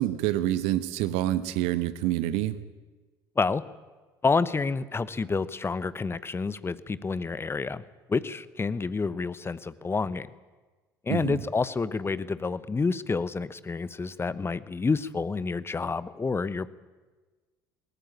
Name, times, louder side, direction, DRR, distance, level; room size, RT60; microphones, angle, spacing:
voice 1, 0.0-2.6 11.1-11.4, right 14 dB, 60° right, 14 dB, 1.3 m, -27 dB
voice 2, 4.2-7.8 8.1-10.3 11.1-16.7, left 4 dB, 20° left, 17 dB, 1.0 m, -29 dB
21.0 x 18.5 x 8.7 m, 1.3 s
figure-of-eight pair, 60°, 12 cm